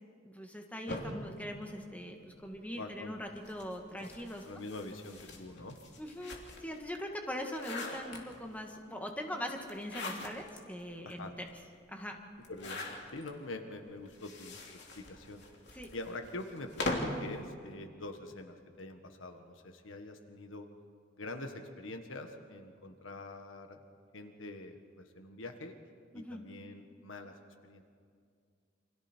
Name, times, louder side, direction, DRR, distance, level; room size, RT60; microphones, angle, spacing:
voice 1, 0.2-4.4 6.0-11.3 11.9-12.2 15.7-15.9 26.1-26.4, equal, 10° left, 2 dB, 1.8 m, -41 dB
sound 1, 0.9-2.5 3.3-6.8 7.2-8.6 9.6-10.6 11.1-11.2 11.4-11.5 12.4-13.3 14.1-17.3, left 2 dB, 60° left, 3.0 m, -41 dB
voice 2, 2.7-3.2 4.4-5.8 11.0-11.3 12.5-12.8 13.1-14.6 14.9-15.4 15.9-20.7 21.2-23.8 24.1-25.8 26.1-27.8, left 2 dB, 80° left, 5 dB, 1.6 m, -45 dB
29.0 x 25.5 x 4.6 m, 2.2 s
head